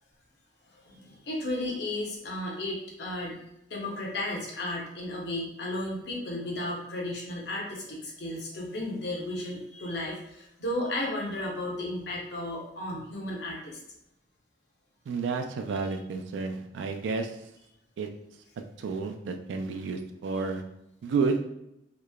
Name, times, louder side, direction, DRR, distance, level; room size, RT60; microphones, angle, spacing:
voice 1, 0.7-3.4 3.7-13.8, left 1 dB, 70° left, -2 dB, 0.7 m, -34 dB
voice 2, 15.1-17.3 18.0-18.1 18.8-20.6 21.0-21.4, right 4 dB, 85° right, 6 dB, 0.3 m, -30 dB
2.9 x 2.0 x 2.2 m, 0.83 s
head